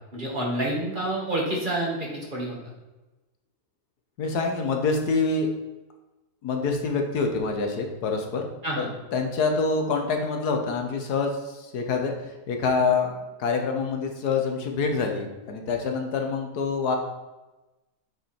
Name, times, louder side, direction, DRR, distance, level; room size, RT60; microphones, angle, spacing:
voice 1, 0.1-2.6 8.6-8.9, right 1 dB, 30° right, -3 dB, 1.9 m, -28 dB
voice 2, 4.2-5.5 6.4-8.5 8.8-8.9 9.1-17.0, left 4 dB, 80° left, 3 dB, 1.6 m, -26 dB
8.1 x 4.8 x 4.4 m, 1.1 s
omnidirectional pair, 1.6 m